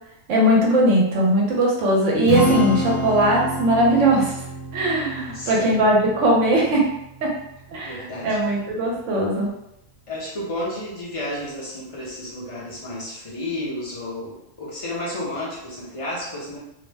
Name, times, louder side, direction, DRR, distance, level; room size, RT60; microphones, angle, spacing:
voice 1, 0.3-4.3 4.7-6.9 7.2-7.3 7.7-8.0 8.2-9.5, right 1 dB, 70° right, -3 dB, 1.1 m, -19 dB
Strum, 2.2-8.5, left 1 dB, 80° left, 1.0 m, -29 dB
voice 2, 5.1-5.8 7.8-8.6 10.1-16.6, left 1 dB, 30° left, -6 dB, 0.7 m, -32 dB
2.7 x 2.1 x 3.3 m, 0.83 s
omnidirectional pair, 1.4 m